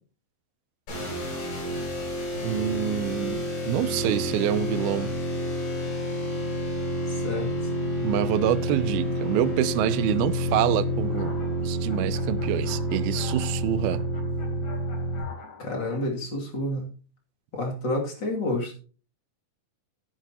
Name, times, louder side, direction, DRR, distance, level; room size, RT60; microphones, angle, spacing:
sound 1, 0.9-15.2, equal, 70° left, 8.1 m, -29 dB
voice 1, 2.4-5.1 8.0-11.4 11.6-14.0, right 12 dB, 85° right, 2.6 m, -26 dB
voice 2, 7.1-7.5 15.6-16.9 17.5-18.7, left 1 dB, 30° left, 2.9 m, -29 dB
sound 2, 11.0-16.0, left 4 dB, 55° left, 4.8 m, -45 dB
15.0 x 10.0 x 3.0 m
omnidirectional pair, 4.3 m